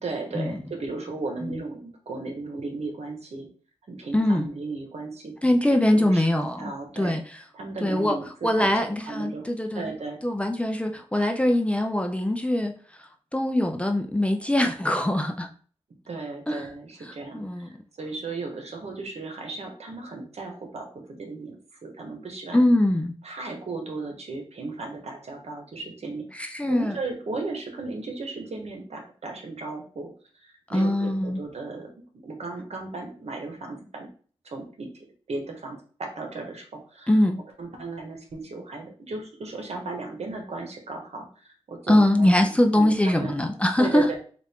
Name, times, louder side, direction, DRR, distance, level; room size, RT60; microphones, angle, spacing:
voice 1, 0.0-3.5 3.9-5.3 5.7-6.3 6.6-7.2 7.5-8.8 9.1-9.5 9.7-10.2 16.1-22.6 23.2-26.3 26.7-30.1 30.4-31.9 32.2-34.1 34.4-34.9 35.3-37.2 37.6-43.3 43.8-44.2, right 3 dB, 75° right, 3 dB, 1.0 m, -35 dB
voice 2, 4.1-4.5 5.4-7.2 7.8-9.9 10.2-12.7 13.3-15.5 16.5-16.6 17.3-17.7 22.5-23.1 26.3-27.0 30.7-31.4 37.1-37.4 41.9-44.1, left 1 dB, 10° left, 4 dB, 0.4 m, -22 dB
4.2 x 2.5 x 3.4 m, 0.43 s
wide cardioid pair, 100°, 11 cm